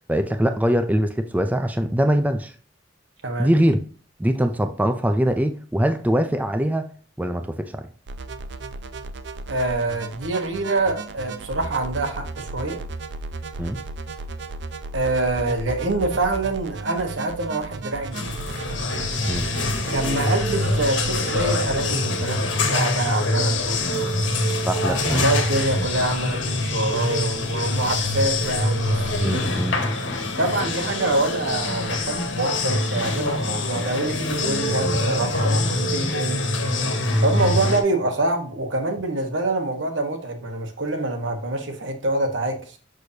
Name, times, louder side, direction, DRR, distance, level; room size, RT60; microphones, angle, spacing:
voice 1, 0.1-2.5 3.4-3.8 4.2-6.9 7.2-7.9 13.6-13.8 19.3-19.5 24.7-25.3 29.2-29.8 34.8-35.0 37.4-37.6, equal, 10° right, 0.4 m, -22 dB
sound 1, 8.1-21.8, right 3 dB, 65° right, 0.6 m, -35 dB
voice 2, 9.5-12.8 14.9-18.4 19.9-24.2 25.1-29.6 30.4-36.5 37.2-42.8, right 2 dB, 80° right, 1.4 m, -25 dB
sound 2, 18.1-37.8, left 2 dB, 80° left, 1.5 m, -24 dB
6.6 x 6.2 x 2.8 m
head